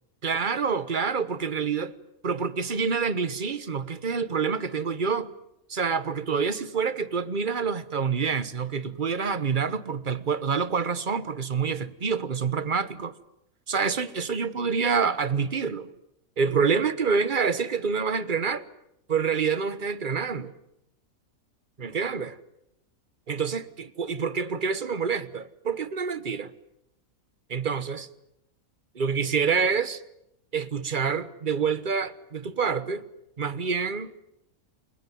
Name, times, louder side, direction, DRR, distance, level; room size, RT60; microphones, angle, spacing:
voice 1, 0.2-1.9 2.2-5.3 5.7-13.1 13.7-15.9 16.4-18.7 19.1-20.5 21.8-22.4 23.3-26.5 27.5-28.1 28.9-30.0 30.5-33.0 33.4-34.1, right 5 dB, 35° right, 1.2 m, -27 dB
29.0 x 22.0 x 9.3 m
omnidirectional pair, 1.5 m